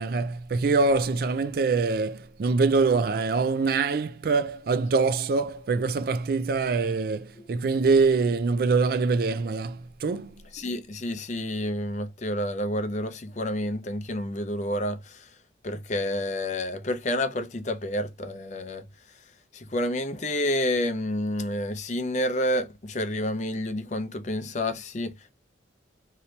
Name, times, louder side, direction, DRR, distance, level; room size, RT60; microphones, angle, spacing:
voice 1, 0.0-10.3, right 4 dB, 50° right, 0.3 m, -24 dB
voice 2, 7.4-7.7 10.5-15.4 15.6-19.2 19.5-25.3, left 1 dB, 40° left, 0.5 m, -29 dB
3.1 x 2.8 x 2.7 m
head